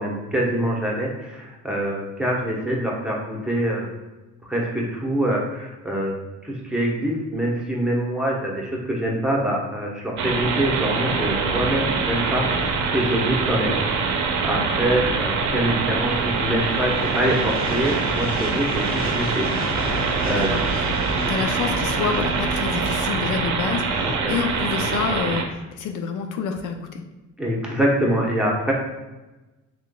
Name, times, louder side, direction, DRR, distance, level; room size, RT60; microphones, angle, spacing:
voice 1, 0.0-3.9 4.4-6.1 6.4-19.5 19.9-20.5 24.0-24.3 27.4-28.7, right 1 dB, 5° right, -3 dB, 0.9 m, -25 dB
sound 1, 10.2-25.4, right 4 dB, 70° right, 0.6 m, -24 dB
sound 2, 12.5-23.4, equal, 30° left, 1.0 m, -34 dB
sound 3, 19.9-22.0, right 4 dB, 20° right, 0.5 m, -37 dB
voice 2, 20.3-20.8 21.3-27.0, left 6 dB, 80° left, 5 dB, 0.5 m, -28 dB
3.6 x 3.5 x 2.2 m, 1.1 s
cardioid pair, 90°, 30 cm